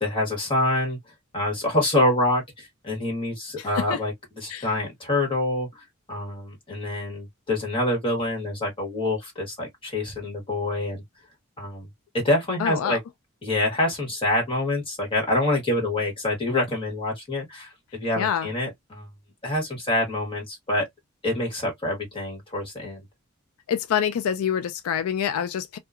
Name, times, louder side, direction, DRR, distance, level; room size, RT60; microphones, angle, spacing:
voice 1, 0.0-1.0 1.3-11.0 11.6-11.9 12.1-13.0 13.4-19.1 19.4-20.9 21.2-23.1, left 1 dB, 25° left, 1.4 m, -26 dB
voice 2, 3.6-4.0 4.5-4.7 12.6-13.0 18.2-18.5 23.7-25.8, left 8 dB, 75° left, 0.3 m, -26 dB
2.8 x 2.3 x 2.3 m
head